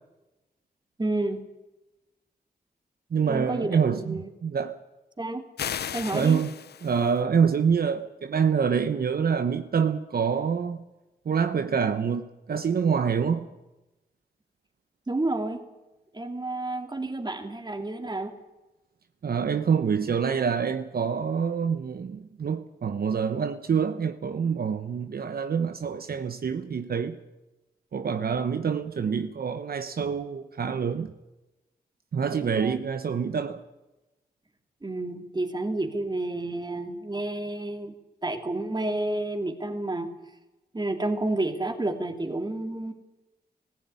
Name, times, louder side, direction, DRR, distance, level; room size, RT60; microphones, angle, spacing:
voice 1, 1.0-1.4 3.3-4.2 5.2-5.4 5.9-6.4 15.1-15.6 16.1-18.3 32.3-32.8 34.8-37.9 38.2-40.1 40.7-42.9, right 2 dB, 25° right, 2.8 m, -30 dB
voice 2, 3.1-4.8 6.1-6.5 6.8-10.9 11.2-13.5 19.2-27.2 27.9-31.1 32.1-33.6, right 6 dB, 70° right, 1.1 m, -26 dB
sound 1, 5.6-7.2, left 9 dB, 85° left, 0.6 m, -35 dB
18.0 x 15.0 x 9.7 m
cardioid pair, 70°, 16 cm